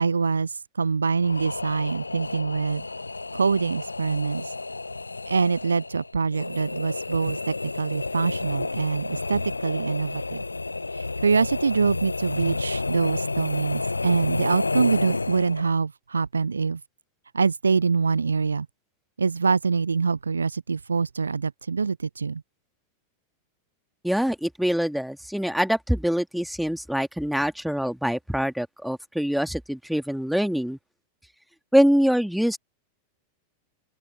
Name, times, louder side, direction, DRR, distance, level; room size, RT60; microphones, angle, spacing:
voice 1, 0.0-2.9 3.3-4.5 5.3-10.4 10.9-16.8 17.3-18.7 19.2-22.4, right 5 dB, 75° right, 0.4 m, -25 dB
sound 1, 1.2-15.8, left 3 dB, 80° left, 0.5 m, -31 dB
voice 2, 24.0-30.8 31.7-32.6, equal, ahead, 2.3 m, -24 dB
open air
figure-of-eight pair, 90°, 0 cm